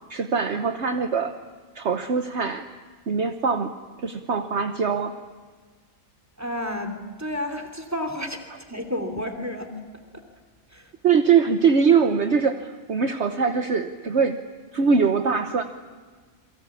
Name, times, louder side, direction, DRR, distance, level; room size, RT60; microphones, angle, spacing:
voice 1, 0.1-1.3 1.7-2.6 3.1-3.7 4.0-5.2 11.0-14.4 14.7-15.6, right 5 dB, 55° right, 6 dB, 1.4 m, -22 dB
voice 2, 6.4-9.8 10.1-10.2 10.7-10.9, left 1 dB, 10° right, 6 dB, 2.8 m, -31 dB
29.0 x 22.0 x 8.6 m, 1.5 s
omnidirectional pair, 1.4 m